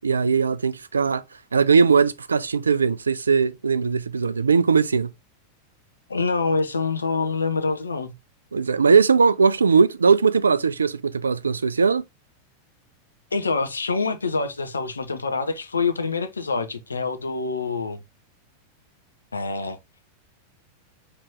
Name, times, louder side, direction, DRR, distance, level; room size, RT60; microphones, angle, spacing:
voice 1, 0.0-1.2 1.5-5.1 8.5-12.0, right 5 dB, 75° right, 0.3 m, -19 dB
voice 2, 6.1-8.1 13.3-18.0 19.3-19.8, left 4 dB, 75° left, 0.6 m, -26 dB
4.5 x 3.0 x 3.4 m
figure-of-eight pair, 90°, 0 cm